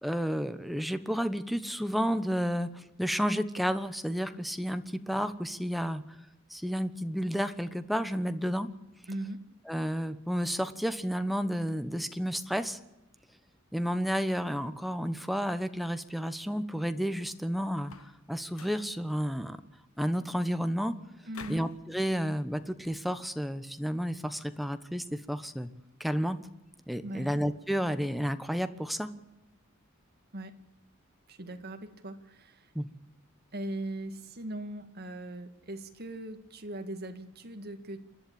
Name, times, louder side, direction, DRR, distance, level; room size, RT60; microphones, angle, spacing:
voice 1, 0.0-6.0 6.5-8.7 9.7-12.8 13.7-17.9 18.3-19.6 20.0-20.9 21.5-25.7 26.0-26.4 26.9-29.1 32.7-32.9, equal, ahead, 10 dB, 1.1 m, -31 dB
voice 2, 9.1-9.5 21.3-21.6 27.0-27.3 30.3-30.5 31.3-32.7 33.5-38.0, right 1 dB, 50° right, 7 dB, 2.0 m, -39 dB
sound 1, 17.8-18.2 18.5-18.9 21.3-21.8, left 5 dB, 80° left, 1.3 m, -48 dB
28.5 x 11.5 x 8.8 m, 0.93 s
head